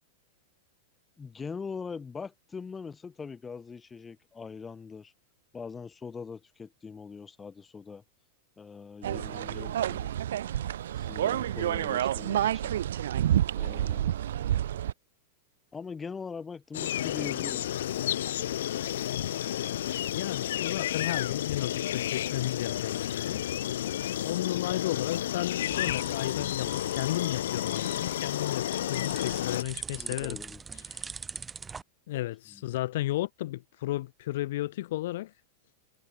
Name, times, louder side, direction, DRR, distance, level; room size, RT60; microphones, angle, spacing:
voice 1, 1.2-5.1 5.5-8.0 8.6-10.1 11.0-12.7 13.6-14.1 15.7-17.9 30.0-30.6 32.1-32.6, left 5 dB, 10° left, 6.1 m, -42 dB
sound 1, 9.0-14.9, right 11 dB, 80° right, 0.9 m, -29 dB
sound 2, 16.7-29.6, left 12 dB, 70° left, 1.8 m, -31 dB
voice 2, 20.2-23.4 24.2-30.4 30.7-31.1 32.1-35.3, left 16 dB, 50° left, 2.3 m, -33 dB
sound 3, 25.3-31.8, right 5 dB, 10° right, 2.9 m, -43 dB
supercardioid pair, 180°, 0 cm